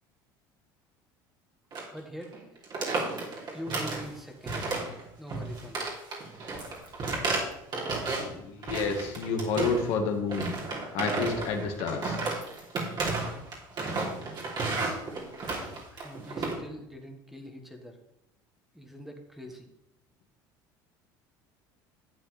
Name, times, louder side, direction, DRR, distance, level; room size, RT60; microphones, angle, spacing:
sound 1, 1.7-2.0 2.2-2.4 2.6-4.1 4.5-5.0 5.3-8.3 8.6-9.9 10.3-16.5, right 3 dB, 45° right, 3.1 m, -32 dB
voice 1, 1.9-2.4 3.5-4.8 5.2-6.0 15.9-18.0 18.7-19.7, equal, 5° right, 3 dB, 1.6 m, -43 dB
voice 2, 8.3-10.5 10.9-12.2, left 4 dB, 65° left, 4 dB, 1.5 m, -29 dB
11.5 x 8.1 x 3.3 m, 0.86 s
supercardioid pair, 85°, 10 cm